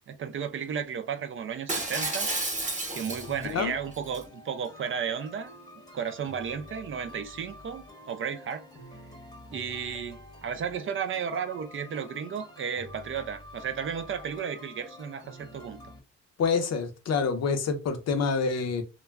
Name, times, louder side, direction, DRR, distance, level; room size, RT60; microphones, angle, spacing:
voice 1, 0.1-2.3 2.9-5.5 5.9-8.6 9.5-15.8, right 7 dB, 45° right, 0.4 m, -33 dB
Shatter, 1.7-3.5 3.9-4.2, right 2 dB, 25° right, 0.9 m, -31 dB
sound 1, 3.0-16.0, left 1 dB, 15° left, 0.8 m, -48 dB
voice 2, 16.4-18.8, left 5 dB, 60° left, 0.7 m, -27 dB
2.3 x 2.1 x 3.4 m
cardioid pair, 90°, 30 cm